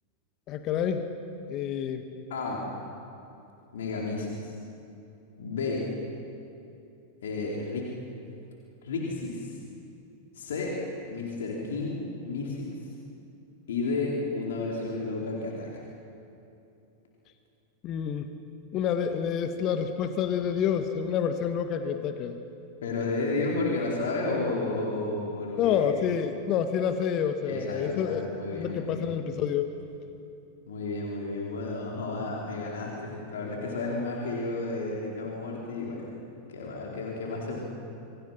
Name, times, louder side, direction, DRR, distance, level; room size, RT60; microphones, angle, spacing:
voice 1, 0.5-1.1 1.5-2.0 17.8-18.3 18.7-22.3 25.6-28.2 28.5-29.7, left 8 dB, 35° left, 8 dB, 1.6 m, -28 dB
voice 2, 2.3-2.7 3.7-4.5 5.4-5.8 7.2-7.9 8.8-9.5 10.3-10.8 11.1-12.7 13.7-15.8 22.8-26.0 27.5-29.1 30.7-36.1 36.5-37.6, left 3 dB, 60° left, -2 dB, 4.4 m, -32 dB
29.0 x 24.0 x 5.9 m, 2.8 s
figure-of-eight pair, 90°, 0 cm